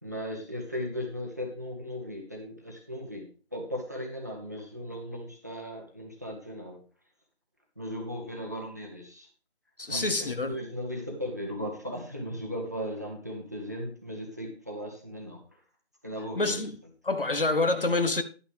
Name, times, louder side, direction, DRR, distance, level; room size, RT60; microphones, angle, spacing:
voice 1, 0.0-6.8 7.8-9.3 9.8-15.4 16.0-16.6, equal, 15° right, 1.0 m, -37 dB
voice 2, 9.8-10.6 16.4-16.8 17.0-18.2, left 2 dB, 55° left, 1.1 m, -27 dB
11.0 x 8.9 x 3.5 m
figure-of-eight pair, 165°, 33 cm